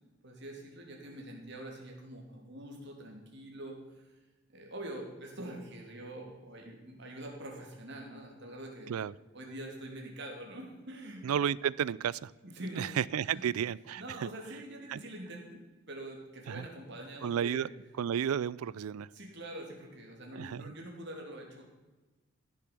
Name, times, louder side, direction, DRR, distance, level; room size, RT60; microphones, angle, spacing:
voice 1, 0.2-4.1 4.5-9.1 9.3-11.2 12.4-12.8 13.3-13.4 14.0-17.7 19.1-21.6, right 1 dB, 55° right, 1 dB, 2.8 m, -45 dB
voice 2, 11.2-12.3 12.7-14.3 14.9-15.0 16.5-16.7 17.2-17.7 18.0-19.1 20.3-20.7, right 8 dB, 90° right, 22 dB, 0.4 m, -32 dB
15.5 x 7.1 x 6.0 m, 1.2 s
head